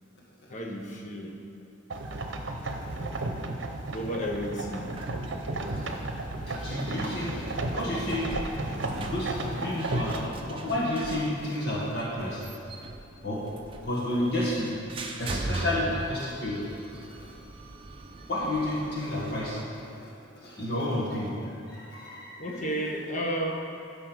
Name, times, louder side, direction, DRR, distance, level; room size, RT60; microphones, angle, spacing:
voice 1, 0.5-1.4 2.3-2.4 3.9-5.0 22.4-23.5, right 1 dB, 40° left, 0 dB, 1.1 m, -32 dB
sound 1, 1.9-10.3, right 2 dB, 65° right, 0.8 m, -33 dB
sound 2, 3.9-19.6, right 2 dB, 25° right, 0.6 m, -41 dB
voice 2, 6.5-12.6 13.2-13.4 13.8-14.8 15.2-16.6 18.3-19.6 20.4-22.7, left 1 dB, 55° left, -6 dB, 1.8 m, -31 dB
11.5 x 5.5 x 6.3 m, 2.5 s
head